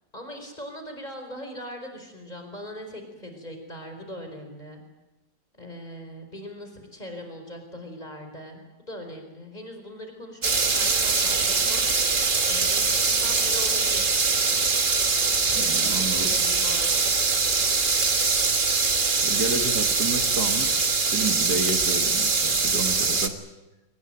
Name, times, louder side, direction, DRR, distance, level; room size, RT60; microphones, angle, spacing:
voice 1, 0.1-4.8 5.5-8.6 8.9-12.1 12.4-14.2 15.5-17.1, equal, 20° left, 5 dB, 4.6 m, -40 dB
sound 1, 10.4-23.3, right 4 dB, 30° right, 1.4 m, -23 dB
voice 2, 15.5-16.3 19.2-20.9 21.1-23.4, right 4 dB, 60° right, 5 dB, 2.4 m, -31 dB
22.5 x 19.5 x 9.1 m, 1.0 s
omnidirectional pair, 2.0 m